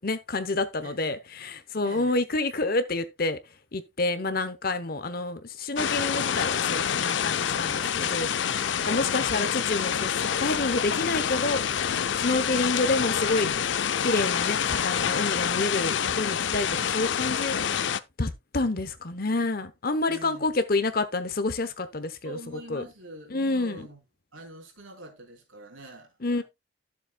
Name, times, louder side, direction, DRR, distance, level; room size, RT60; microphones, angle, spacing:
voice 1, 0.0-3.4 3.7-8.3 8.8-13.5 14.0-17.9 18.2-22.4 22.7-22.8 23.3-23.9 26.2-26.4, left 2 dB, 45° left, 0.9 m, -28 dB
voice 2, 0.8-1.2 1.8-2.2 8.8-9.2 20.1-20.5 22.2-24.0 24.3-26.4, right 2 dB, 80° right, 3.4 m, -45 dB
sound 1, 5.8-18.0, left 8 dB, 65° left, 0.5 m, -27 dB
13.0 x 7.2 x 2.3 m
head